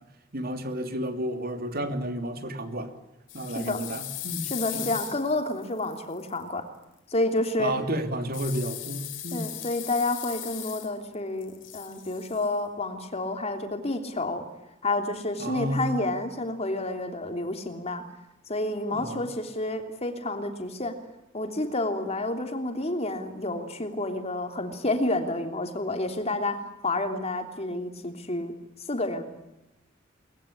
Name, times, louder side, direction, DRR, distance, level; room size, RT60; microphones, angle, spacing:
voice 1, 0.3-2.9 3.3-4.5 4.7-4.9 7.6-9.5 15.4-16.0 18.9-19.3, right 1 dB, 50° right, 7 dB, 3.0 m, -31 dB
sound 1, 3.3-6.3 8.3-11.1 11.4-12.5, left 14 dB, 70° left, 3.4 m, -38 dB
voice 2, 4.5-6.6 7.1-7.7 9.3-14.4 14.8-18.0 18.5-20.9 21.3-26.6 26.8-28.5 28.9-29.2, left 2 dB, 35° left, 5 dB, 3.2 m, -29 dB
22.0 x 20.5 x 10.0 m, 0.92 s
head